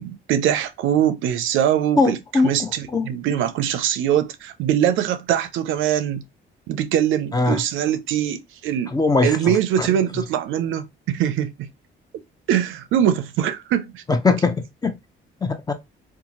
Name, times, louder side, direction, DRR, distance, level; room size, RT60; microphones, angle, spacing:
voice 1, 0.0-2.2 2.4-6.2 6.7-8.9 9.2-11.7 12.5-14.0, right 10 dB, 80° right, 0.4 m, -22 dB
voice 2, 2.0-3.1 7.3-7.6 8.9-9.9 14.1-14.6 14.8-14.9 15.4-15.7, left 3 dB, 20° left, 0.5 m, -21 dB
2.6 x 2.3 x 2.9 m
cardioid pair, 90°, 20 cm